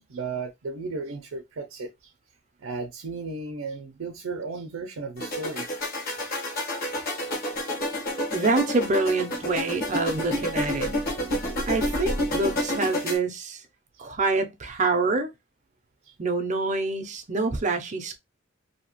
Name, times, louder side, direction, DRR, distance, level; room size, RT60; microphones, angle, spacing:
voice 1, 0.0-2.1 2.6-5.6 6.2-6.3 7.1-7.2 7.9-8.0 16.0-16.1, right 3 dB, 85° right, 0.5 m, -35 dB
sound 1, 5.2-13.2, left 1 dB, 50° left, 1.1 m, -29 dB
voice 2, 8.3-11.0 11.7-13.6 14.0-15.3 16.2-18.2, right 3 dB, 35° right, 0.6 m, -26 dB
2.7 x 2.4 x 2.9 m
head